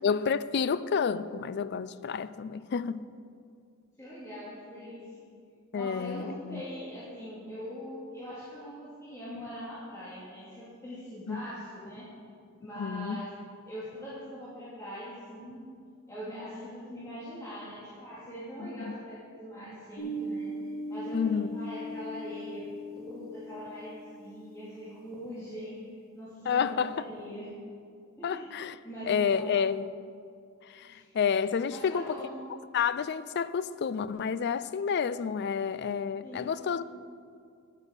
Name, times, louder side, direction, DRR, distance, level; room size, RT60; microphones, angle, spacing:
voice 1, 0.0-3.0 5.7-6.6 11.3-11.4 12.7-13.2 18.6-18.9 21.1-21.6 26.5-27.0 28.2-28.8 29.0-29.9 30.6-32.2 32.7-36.9, left 6 dB, 55° left, 0.4 m, -30 dB
voice 2, 4.0-5.2 5.7-12.0 12.6-13.3 13.7-15.6 16.1-22.7 22.9-27.5 28.2-28.5 28.8-29.5 30.9-31.1 31.7-32.4 36.2-36.7, equal, 15° left, 2.4 m, -42 dB
sound 1, 20.0-24.2, equal, 70° left, 3.1 m, -39 dB
13.0 x 8.4 x 5.2 m
head